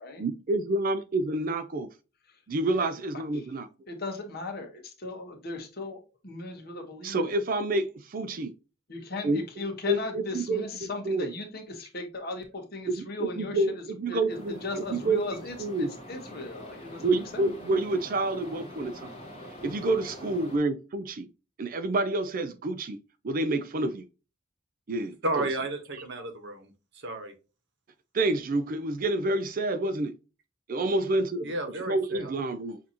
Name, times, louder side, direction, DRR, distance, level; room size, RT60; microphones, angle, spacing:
voice 1, 0.2-1.9 2.5-3.7 7.0-8.5 9.2-9.4 9.9-11.3 12.9-15.2 15.6-15.9 17.0-19.1 19.6-21.3 21.6-23.0 23.2-24.1 24.9-25.5 28.1-30.1 30.7-31.5 31.9-32.8, right 2 dB, 45° right, 0.4 m, -28 dB
voice 2, 3.9-7.3 8.9-17.5, left 2 dB, 50° left, 1.3 m, -38 dB
sound 1, 14.3-20.6, left 1 dB, 30° left, 1.5 m, -44 dB
voice 3, 25.2-27.3 31.4-32.3, right 2 dB, 60° right, 1.2 m, -33 dB
6.5 x 2.7 x 2.8 m
head